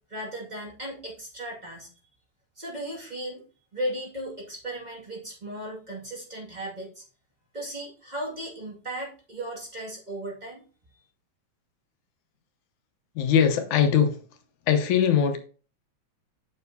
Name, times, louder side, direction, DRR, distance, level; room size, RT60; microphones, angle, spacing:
voice 1, 0.1-1.9 2.6-3.4 3.7-7.0 7.5-10.6, right 1 dB, 15° right, -3 dB, 1.8 m, -36 dB
voice 2, 13.2-14.2 14.7-15.4, left 8 dB, 90° left, 7 dB, 2.4 m, -21 dB
7.5 x 6.9 x 2.8 m, 0.37 s
omnidirectional pair, 3.3 m